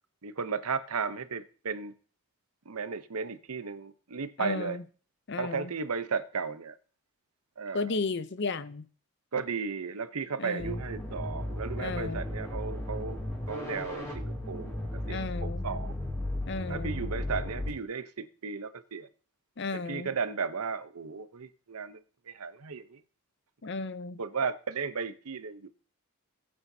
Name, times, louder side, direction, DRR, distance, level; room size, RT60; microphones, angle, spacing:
voice 1, 0.2-1.9 2.7-4.8 5.4-6.8 7.6-8.0 9.3-14.8 15.1-16.0 16.7-19.1 19.7-22.0 22.3-23.0 24.2-25.7, right 5 dB, 80° right, 0.8 m, -35 dB
voice 2, 4.4-4.8 5.3-5.7 7.7-8.9 10.4-10.8 11.8-12.2 15.0-15.7 16.5-16.9 19.6-20.1 23.6-24.2, left 3 dB, 50° left, 0.6 m, -34 dB
sound 1, 10.6-17.7, left 1 dB, 15° left, 3.1 m, -35 dB
19.0 x 8.7 x 2.7 m
head